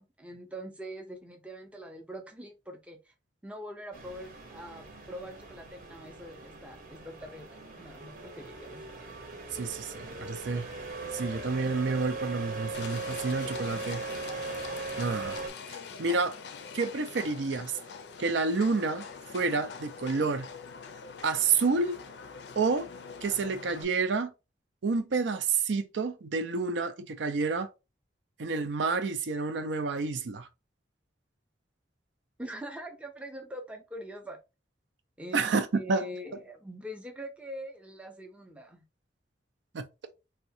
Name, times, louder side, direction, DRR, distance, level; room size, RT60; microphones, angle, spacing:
voice 1, 0.0-3.1 3.4-8.9 32.4-34.4 35.2-35.5 35.7-38.8, equal, 5° right, 0.4 m, -43 dB
sound 1, 3.9-15.5, right 3 dB, 50° right, 0.8 m, -39 dB
voice 2, 9.5-10.7 11.1-14.0 15.0-15.4 16.0-16.4 16.7-17.7 18.2-19.1 19.3-20.5 21.2-21.9 22.6-22.9 23.2-24.3 24.8-27.7 28.4-30.5 35.3-36.0 39.7-39.8, right 4 dB, 80° right, 0.5 m, -29 dB
Livestock farm animals working animals, 12.7-23.8, left 5 dB, 70° left, 0.4 m, -44 dB
3.6 x 2.2 x 2.6 m
head